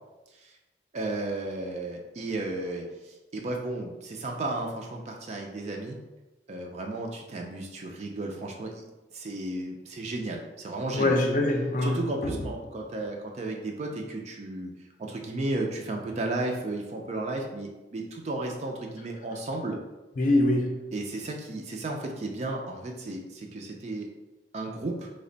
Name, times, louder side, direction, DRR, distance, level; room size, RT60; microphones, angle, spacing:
voice 1, 0.9-6.0 6.5-8.8 9.1-11.1 11.8-14.7 15.0-19.8 20.9-24.1 24.5-25.1, right 2 dB, 40° right, 0.4 m, -34 dB
voice 2, 10.9-12.4 20.2-20.8, left 1 dB, 45° left, 0.5 m, -24 dB
3.3 x 2.1 x 3.8 m
head